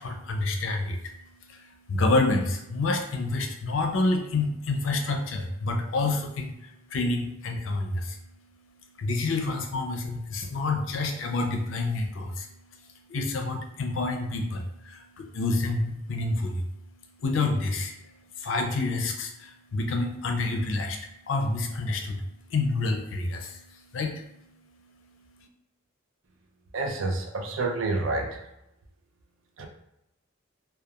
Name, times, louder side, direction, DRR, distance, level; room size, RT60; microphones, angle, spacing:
voice 1, 0.0-25.5, left 2 dB, 70° left, 4 dB, 0.4 m, -29 dB
voice 2, 26.7-28.4 29.6-29.7, right 3 dB, 75° right, 2 dB, 0.5 m, -28 dB
2.3 x 2.2 x 2.9 m, 0.87 s
head